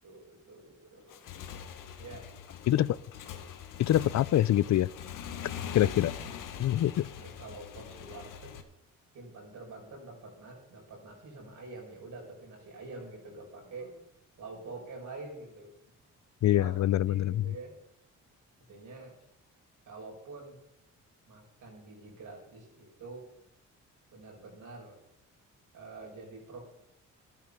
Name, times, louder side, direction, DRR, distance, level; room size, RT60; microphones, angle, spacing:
voice 1, 0.0-1.3 2.0-2.3 7.2-8.5 9.1-14.0 14.4-15.7 16.5-16.7 17.1-17.7 18.7-19.1 19.9-20.6 21.2-23.2 24.1-25.0 25.7-26.6, right 3 dB, 70° right, 0 dB, 6.1 m, -46 dB
Motorcycle / Engine, 1.0-8.6, left 8 dB, 85° left, 1.5 m, -43 dB
voice 2, 3.8-4.9 5.7-6.1 6.6-7.1 16.4-17.5, left 13 dB, 60° left, 20 dB, 0.5 m, -25 dB
13.0 x 12.0 x 5.8 m, 0.79 s
cardioid pair, 80°, 31 cm